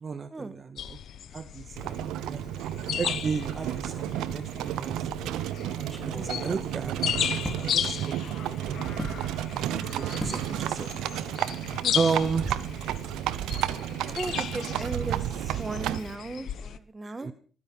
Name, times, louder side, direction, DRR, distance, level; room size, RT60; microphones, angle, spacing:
voice 1, 0.0-1.0 1.3-2.4 2.8-5.4 6.0-8.2 8.4-9.0 9.4-10.9 11.3-12.5 17.0-17.3, right 5 dB, 40° right, 13 dB, 0.8 m, -34 dB
sound 1, 0.8-16.8, left 9 dB, 70° left, 1.0 m, -36 dB
Livestock farm animals working animals, 1.8-16.1, right 12 dB, 90° right, 0.8 m, -32 dB
sound 2, 5.7-7.7 9.0-9.2 10.2-10.5 10.8-11.1 11.4-11.6, right 1 dB, 5° right, 3.9 m, -38 dB
voice 2, 14.1-17.3, right 2 dB, 20° right, 13 dB, 1.6 m, -36 dB
19.5 x 10.0 x 5.6 m, 0.42 s
cardioid pair, 90°, 0 cm